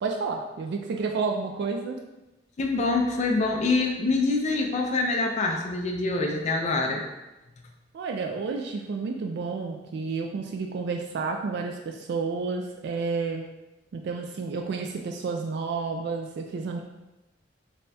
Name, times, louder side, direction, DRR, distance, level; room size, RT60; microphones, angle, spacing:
voice 1, 0.0-2.0 7.9-13.4 13.9-16.8, right 4 dB, 65° right, 3 dB, 0.3 m, -30 dB
voice 2, 2.6-7.1, left 3 dB, 40° left, 2 dB, 0.4 m, -25 dB
3.3 x 2.2 x 4.0 m, 1.0 s
head